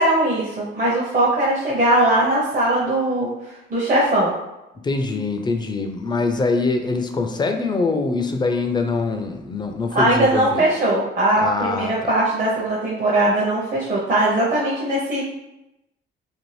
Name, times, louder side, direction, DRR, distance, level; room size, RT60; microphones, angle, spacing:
voice 1, 0.0-3.3 3.7-4.3 9.9-15.2, right 1 dB, 40° right, -6 dB, 0.7 m, -20 dB
voice 2, 4.8-10.7 11.4-12.1, left 3 dB, 20° left, 5 dB, 0.3 m, -23 dB
2.6 x 2.4 x 3.1 m, 0.92 s
cardioid pair, 90°, 20 cm